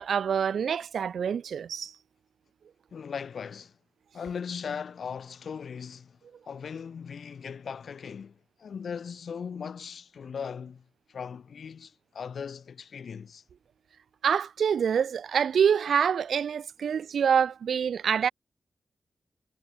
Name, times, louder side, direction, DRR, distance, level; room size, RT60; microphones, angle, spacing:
voice 1, 0.0-1.9 14.2-18.3, right 7 dB, 80° right, 0.9 m, -26 dB
voice 2, 2.9-3.8 4.1-6.2 6.5-13.4, left 6 dB, 75° left, 3.6 m, -38 dB
cardioid pair, 45°, 0 cm